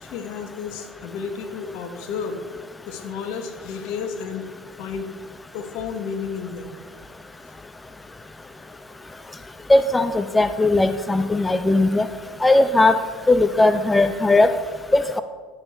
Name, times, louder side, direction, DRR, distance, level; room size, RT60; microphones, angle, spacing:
voice 1, 0.0-2.4 2.9-4.5 4.8-5.1 5.5-6.7, left 6 dB, 65° left, 6 dB, 1.4 m, -31 dB
voice 2, 9.7-12.1 12.4-13.0 13.3-14.5 14.9-15.2, left 2 dB, 15° left, 11 dB, 0.5 m, -18 dB
11.0 x 7.6 x 4.4 m, 1.5 s
hypercardioid pair, 75°, 0 cm